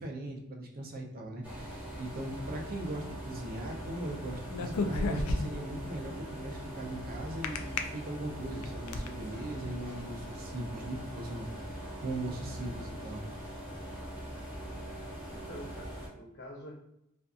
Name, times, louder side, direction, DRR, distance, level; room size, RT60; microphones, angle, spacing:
voice 1, 0.0-13.2, right 1 dB, 40° right, 1 dB, 0.5 m, -40 dB
sound 1, 1.4-16.1, right 1 dB, 5° right, 0.7 m, -42 dB
sound 2, 4.5-5.7 7.4-7.8 8.4-9.1, left 3 dB, 80° left, 0.3 m, -31 dB
voice 2, 15.2-16.8, equal, 50° left, -2 dB, 0.8 m, -47 dB
2.5 x 2.4 x 2.4 m, 0.81 s
head